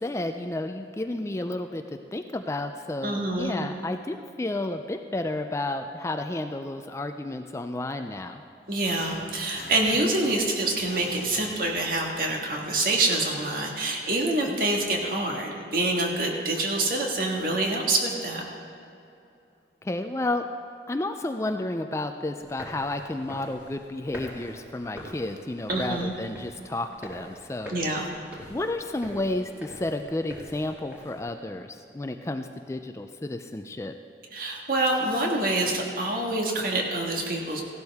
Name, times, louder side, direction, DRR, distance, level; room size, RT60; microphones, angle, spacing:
voice 1, 0.0-1.8 2.1-8.4 14.5-14.6 19.8-20.5 20.9-27.7 28.5-33.9, left 2 dB, 15° left, 7 dB, 0.4 m, -31 dB
voice 2, 3.0-3.5 8.7-18.4 25.7-26.1 27.7-28.1 34.3-37.6, right 2 dB, 55° right, 0 dB, 1.7 m, -26 dB
sound 1, 8.7-12.4, left 2 dB, 55° left, 1.4 m, -45 dB
sound 2, 22.4-31.2, equal, 10° right, 2.1 m, -44 dB
16.0 x 12.0 x 3.6 m, 2.7 s
head